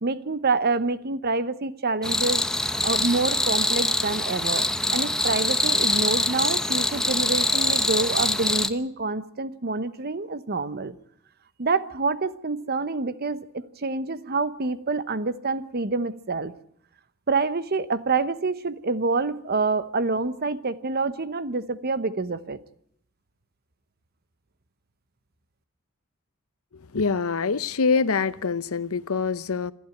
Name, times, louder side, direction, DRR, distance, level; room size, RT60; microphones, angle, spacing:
voice 1, 0.0-10.9 11.6-16.5 17.3-22.6, right 3 dB, 45° right, 1.0 m, -27 dB
sound 1, 2.0-8.7, left 1 dB, 5° left, 1.0 m, -24 dB
voice 2, 26.9-29.7, left 5 dB, 75° left, 0.8 m, -25 dB
27.5 x 12.0 x 9.2 m
head